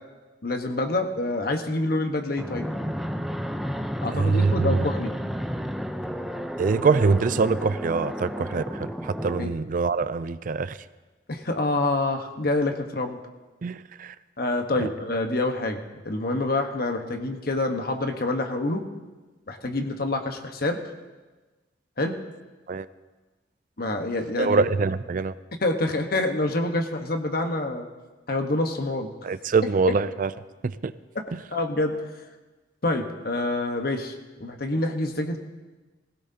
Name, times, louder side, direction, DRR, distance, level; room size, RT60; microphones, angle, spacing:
voice 1, 0.4-2.6 4.0-5.1 9.4-9.5 11.3-13.2 14.4-18.8 19.5-20.8 22.0-22.1 23.8-24.6 25.6-27.9 28.3-29.1 31.5-31.9 32.8-35.4, left 2 dB, 55° left, 4 dB, 1.3 m, -27 dB
Fixed-wing aircraft airplane, 2.4-9.4, equal, ahead, 0.5 m, -32 dB
voice 2, 4.1-4.9 6.6-10.8 13.6-14.1 14.8-14.9 22.7-22.9 24.4-25.3 29.2-30.3 30.6-30.9 31.3-31.4, right 4 dB, 50° right, 14 dB, 0.4 m, -24 dB
20.0 x 17.0 x 2.8 m, 1.2 s
head